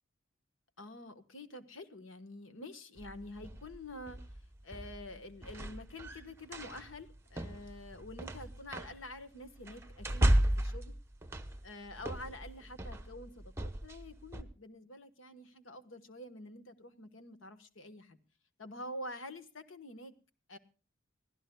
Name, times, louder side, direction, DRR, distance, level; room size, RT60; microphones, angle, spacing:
voice 1, 0.8-4.2 4.6-11.0 11.6-18.2 18.6-20.1 20.5-20.6, left 1 dB, 85° left, 9 dB, 1.3 m, -47 dB
sound 1, 3.0-14.4, right 1 dB, 15° right, 0.9 m, -35 dB
24.0 x 15.5 x 2.3 m, 0.34 s
head